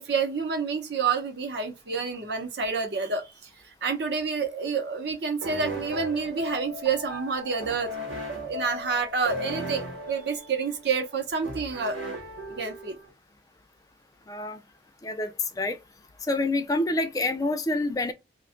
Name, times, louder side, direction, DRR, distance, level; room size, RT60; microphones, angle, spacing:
voice 1, 0.0-3.5 3.8-7.9 8.4-12.0 12.5-13.0, right 5 dB, 60° right, 0.7 m, -28 dB
sound 1, 5.4-13.1, equal, 90° right, 1.2 m, -36 dB
voice 2, 14.3-14.6 15.0-15.3 15.6-15.8 16.3-18.1, left 2 dB, 20° left, 0.3 m, -27 dB
2.5 x 2.2 x 3.6 m
head